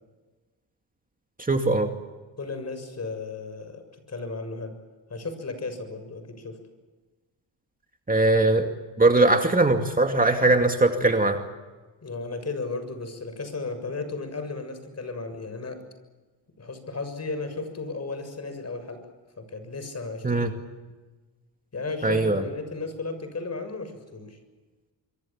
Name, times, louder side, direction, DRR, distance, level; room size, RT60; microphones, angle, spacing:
voice 1, 1.5-1.9 8.1-8.7 9.0-11.4 20.2-20.5 22.0-22.4, right 2 dB, 20° right, 4 dB, 2.4 m, -20 dB
voice 2, 2.4-4.8 5.1-6.6 12.0-15.8 16.6-19.1 19.4-20.6 21.7-24.4, left 3 dB, 35° left, 9 dB, 6.8 m, -34 dB
27.0 x 23.5 x 7.4 m, 1.3 s
cardioid pair, 85°, 44 cm